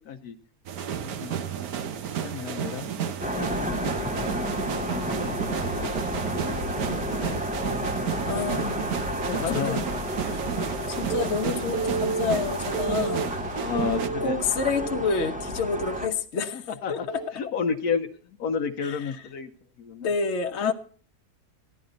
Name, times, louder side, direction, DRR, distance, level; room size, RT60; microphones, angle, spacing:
voice 1, 0.1-0.4 1.0-1.4 1.9-4.3 5.1-7.7 9.3-10.1 10.5-10.6 13.5-14.4 16.5-17.1 17.3-19.5 19.8-20.1 20.6-20.7, left 6 dB, 75° left, 6 dB, 1.2 m, -33 dB
sound 1, 0.7-14.1, right 8 dB, 70° right, 1.3 m, -32 dB
sound 2, 3.2-16.1, equal, 5° right, 0.6 m, -32 dB
voice 2, 8.3-8.9 9.5-9.8 10.2-10.4 10.9-13.3 14.2-17.2 18.8-19.1 20.0-20.7, left 5 dB, 50° left, 5 dB, 1.1 m, -29 dB
Telephone, 11.1-11.2 11.7-12.2 12.7-13.3 13.7-14.3 14.8-15.3 15.8-16.1 17.1-17.3, right 5 dB, 55° right, 0.6 m, -31 dB
15.0 x 11.0 x 3.9 m, 0.43 s
omnidirectional pair, 1.7 m